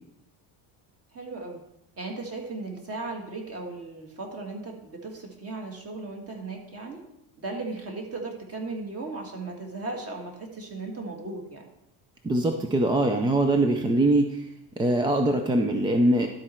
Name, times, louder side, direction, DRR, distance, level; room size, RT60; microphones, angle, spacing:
voice 1, 1.1-1.6 2.0-7.0 7.4-11.7, right 3 dB, 30° right, 1 dB, 1.8 m, -36 dB
voice 2, 12.2-14.5 14.8-16.3, right 1 dB, 10° right, 5 dB, 0.3 m, -22 dB
12.0 x 4.3 x 4.4 m, 0.81 s
cardioid pair, 120°, 47 cm